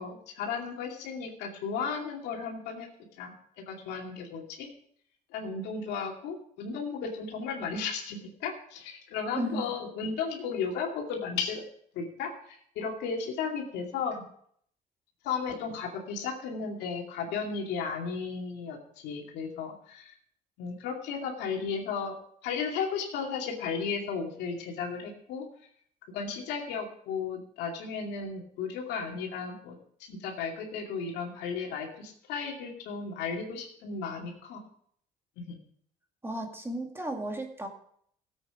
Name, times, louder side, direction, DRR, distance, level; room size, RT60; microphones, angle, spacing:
voice 1, 0.0-2.9 3.2-3.3 3.7-4.7 5.3-11.6 11.9-14.2 15.2-18.8 19.0-20.1 20.6-22.1 22.4-25.5 26.1-29.7 30.0-34.6 35.4-35.6, left 5 dB, 90° left, 1 dB, 2.5 m, -34 dB
voice 2, 36.2-37.7, right 1 dB, 15° right, 3 dB, 2.0 m, -34 dB
16.0 x 8.2 x 4.9 m, 0.65 s
cardioid pair, 110°, 17 cm